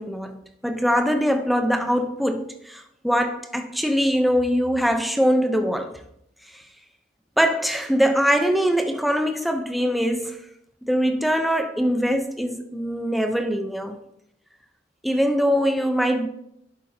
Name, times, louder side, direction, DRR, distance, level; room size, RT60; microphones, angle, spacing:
voice 1, 0.0-5.9 6.5-6.6 7.4-10.4 10.8-14.0 15.0-16.3, equal, ahead, 0.6 m, -22 dB
11.0 x 8.0 x 2.7 m
head